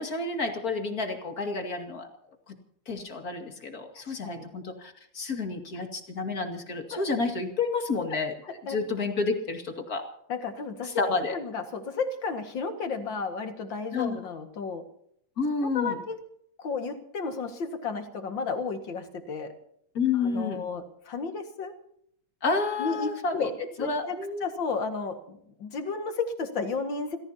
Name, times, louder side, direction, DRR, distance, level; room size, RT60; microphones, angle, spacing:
voice 1, 0.0-2.1 2.5-2.6 2.9-8.3 8.7-10.1 10.8-11.4 13.9-14.2 15.4-16.0 19.9-20.6 22.4-23.5 23.8-24.5, left 4 dB, 50° left, 5 dB, 2.7 m, -30 dB
voice 2, 8.5-8.8 10.3-14.8 15.6-16.2 16.6-19.5 20.1-21.7 22.8-27.2, left 4 dB, 75° left, 7 dB, 2.6 m, -33 dB
29.5 x 16.0 x 2.9 m, 0.69 s
omnidirectional pair, 2.1 m